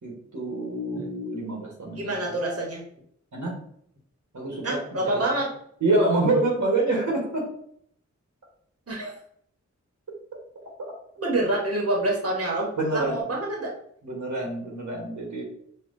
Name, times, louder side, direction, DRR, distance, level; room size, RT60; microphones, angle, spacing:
voice 1, 0.0-2.2 3.3-3.6 4.3-5.3 5.8-7.5 12.8-13.3 14.0-15.4, right 2 dB, 80° right, -1 dB, 1.2 m, -26 dB
voice 2, 2.0-2.8 4.6-5.5 8.9-9.1 11.2-13.7, right 2 dB, 55° right, -2 dB, 1.1 m, -27 dB
5.3 x 2.4 x 2.5 m, 0.66 s
wide cardioid pair, 70°, 29 cm